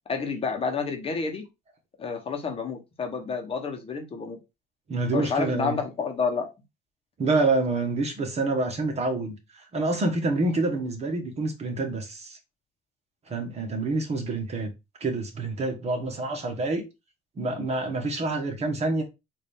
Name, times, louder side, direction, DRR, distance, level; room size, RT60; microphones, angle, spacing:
voice 1, 0.1-1.4 2.0-4.4 5.1-6.5, left 5 dB, 35° left, 1.0 m, -29 dB
voice 2, 4.9-5.8 7.2-12.4 13.3-14.7 15.0-16.8 17.4-19.0, right 2 dB, 40° right, 1.3 m, -27 dB
4.0 x 2.7 x 3.4 m
cardioid pair, 110°, 17 cm